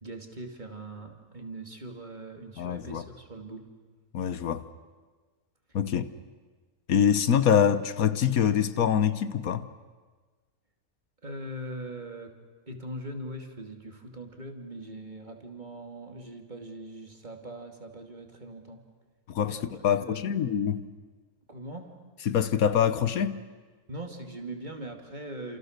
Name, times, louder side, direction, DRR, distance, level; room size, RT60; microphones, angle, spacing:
voice 1, 0.0-3.7 11.2-12.3 12.7-18.8 19.5-20.2 21.5-21.9 23.9-25.6, right 1 dB, 30° right, 2.8 m, -41 dB
voice 2, 2.6-3.0 4.1-4.6 5.7-6.1 6.9-9.7 19.3-20.9 22.3-23.4, left 8 dB, 75° left, 1.4 m, -25 dB
29.5 x 27.5 x 6.7 m
omnidirectional pair, 1.5 m